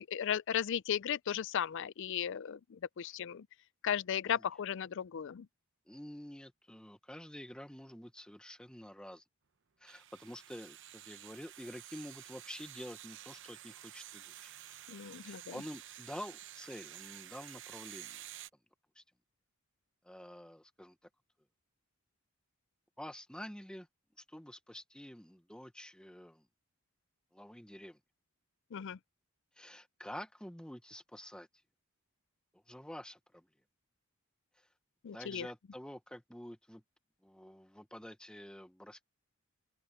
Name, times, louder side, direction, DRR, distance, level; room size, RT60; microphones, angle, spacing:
voice 1, 0.0-3.5 3.8-5.5 14.9-15.6 28.7-29.0 35.0-35.5, left 9 dB, 55° left, 0.4 m, -36 dB
voice 2, 5.9-9.2 9.8-14.6 15.2-18.2 18.9-19.0 20.0-21.0 23.0-23.9 24.2-26.5 27.3-28.0 29.6-31.5 32.5-33.5 34.6-34.7 35.1-36.8 37.2-39.0, equal, 5° left, 0.9 m, -48 dB
sound 1, 9.9-18.5, right 12 dB, 55° right, 0.8 m, -51 dB
open air
head